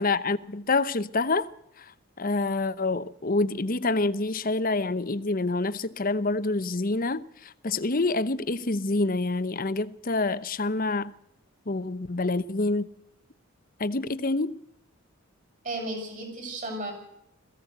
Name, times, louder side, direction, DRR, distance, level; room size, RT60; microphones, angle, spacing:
voice 1, 0.0-1.5 2.2-7.2 7.6-11.1 11.7-12.9 13.8-14.6, left 3 dB, 40° left, 0.9 m, -27 dB
voice 2, 15.6-16.9, right 1 dB, 35° right, 7.1 m, -34 dB
21.5 x 16.0 x 8.0 m
head